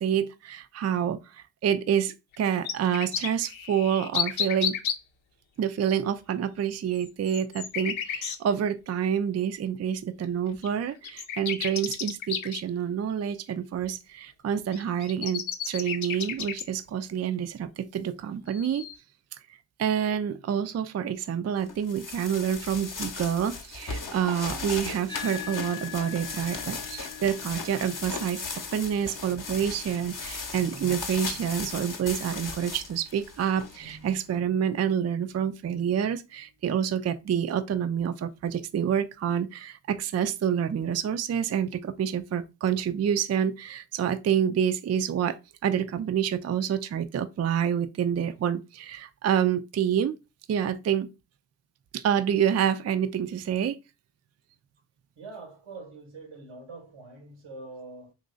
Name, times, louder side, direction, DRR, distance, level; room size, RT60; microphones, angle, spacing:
voice 1, 0.0-4.8 5.6-18.9 19.8-28.4 28.7-45.4 45.6-50.2 50.5-51.1 51.9-53.8, right 8 dB, 35° right, 0.4 m, -28 dB
sound 1, 2.3-4.9 6.9-8.4 10.2-10.3 10.6-10.7 11.0-12.6 14.7-16.6 18.5-18.9, left 8 dB, 75° left, 0.7 m, -32 dB
sound 2, 21.7-34.2, left 4 dB, 40° left, 0.8 m, -37 dB
sound 3, 25.1-33.8, left 10 dB, 10° left, 0.7 m, -45 dB
voice 2, 55.2-58.1, right 3 dB, 85° right, 1.1 m, -44 dB
2.9 x 2.5 x 3.8 m
cardioid pair, 45°, 48 cm